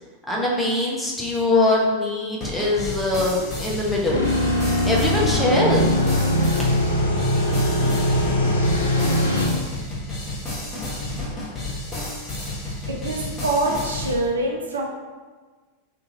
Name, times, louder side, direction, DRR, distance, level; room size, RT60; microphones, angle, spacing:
voice 1, 0.3-4.2 4.9-6.0, left 2 dB, 5° left, -4 dB, 0.6 m, -22 dB
sound 1, 2.4-14.1, left 2 dB, 20° left, 1.0 m, -31 dB
sound 2, 4.1-9.5, left 1 dB, 75° left, 0.5 m, -21 dB
voice 2, 12.9-14.8, right 2 dB, 70° right, -1 dB, 0.4 m, -25 dB
2.6 x 2.5 x 2.7 m, 1.4 s
figure-of-eight pair, 90°, 0 cm